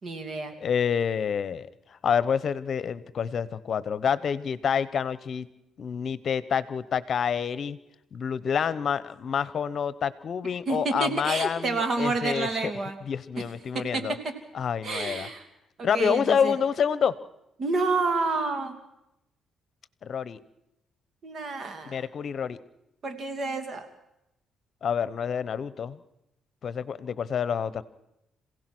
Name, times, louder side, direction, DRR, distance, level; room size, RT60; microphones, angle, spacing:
voice 1, 0.0-0.5 10.7-12.9 13.7-14.3 14.8-15.4 15.8-16.5 17.6-18.7 21.2-22.0 23.0-23.9, right 3 dB, 50° right, 7 dB, 2.8 m, -29 dB
voice 2, 0.6-5.5 5.8-7.8 8.1-12.7 13.1-14.1 14.5-15.3 15.8-17.2 20.0-20.4 21.9-22.6 24.8-26.0 26.6-27.8, left 7 dB, 55° left, 17 dB, 1.0 m, -28 dB
27.0 x 16.5 x 6.2 m, 0.87 s
cardioid pair, 90°, 0 cm